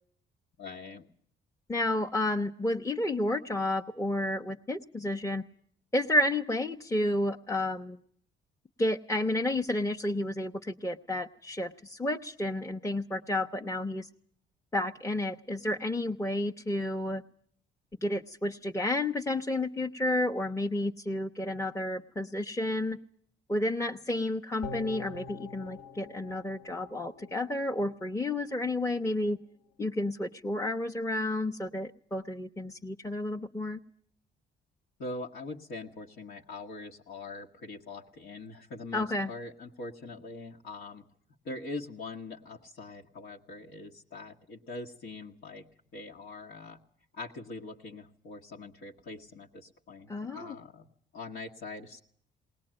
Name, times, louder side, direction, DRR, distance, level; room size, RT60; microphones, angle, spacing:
voice 1, 0.6-1.1 35.0-41.0 41.4-45.7 45.9-46.8 47.1-50.8 51.1-52.0, left 3 dB, 80° left, -1 dB, 1.5 m, -43 dB
voice 2, 1.7-5.4 5.9-8.0 8.8-14.1 14.7-17.2 18.0-23.0 23.5-29.4 29.8-33.8 38.9-39.3 50.1-50.5, left 1 dB, 15° left, 2 dB, 0.9 m, -31 dB
sound 1, 24.6-28.0 28.3-28.4, left 4 dB, 50° left, 1.3 m, -45 dB
20.5 x 19.5 x 8.9 m, 0.63 s
cardioid pair, 90°, 20 cm